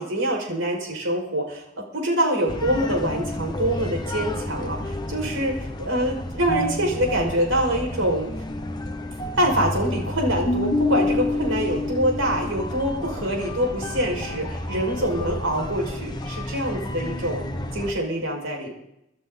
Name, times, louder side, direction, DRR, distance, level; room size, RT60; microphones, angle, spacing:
voice 1, 0.0-1.6 1.9-8.3 9.4-17.4 17.7-18.7, right 1 dB, 90° right, 1 dB, 5.5 m, -25 dB
sound 1, 2.5-17.9, left 1 dB, 20° left, 1.3 m, -29 dB
24.5 x 12.5 x 4.0 m, 0.81 s
head